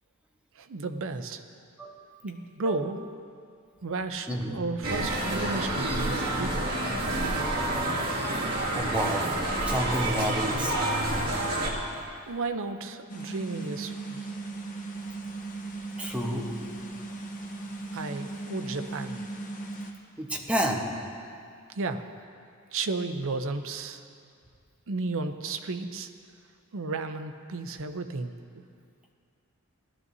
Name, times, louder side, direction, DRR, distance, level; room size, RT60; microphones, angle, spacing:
voice 1, 0.5-1.4 2.2-3.1 3.8-6.6 12.3-14.3 17.9-19.3 21.7-22.1 22.7-24.0 24.9-26.1 26.7-28.6, right 3 dB, 65° right, 8 dB, 0.6 m, -33 dB
voice 2, 4.3-4.6 8.7-9.2 9.7-10.8 16.0-16.5 20.2-20.8, equal, 5° right, -1 dB, 1.1 m, -29 dB
sound 1, 4.8-11.7, right 1 dB, 45° right, 2.0 m, -28 dB
sound 2, 13.1-19.9, right 3 dB, 40° left, 1.0 m, -38 dB
17.5 x 12.0 x 2.7 m, 2.3 s
head